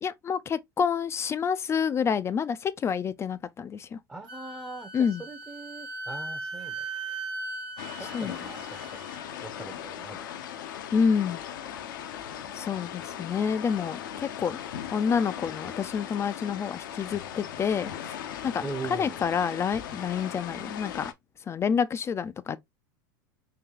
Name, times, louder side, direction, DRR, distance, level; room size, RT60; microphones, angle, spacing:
voice 1, 0.0-4.0 4.9-5.2 8.1-8.3 10.9-11.4 12.5-14.6 14.9-18.2 18.4-18.6 18.9-21.1 21.5-22.6, left 6 dB, 25° left, 0.3 m, -28 dB
voice 2, 4.1-6.8 8.0-9.0 9.4-10.3 18.6-19.2, right 3 dB, 10° right, 0.7 m, -41 dB
Wind instrument woodwind instrument, 4.3-9.4, right 3 dB, 50° right, 1.0 m, -39 dB
sound 1, 7.8-21.1, left 9 dB, 75° left, 0.6 m, -38 dB
3.8 x 2.8 x 2.8 m
hypercardioid pair, 100°, 11 cm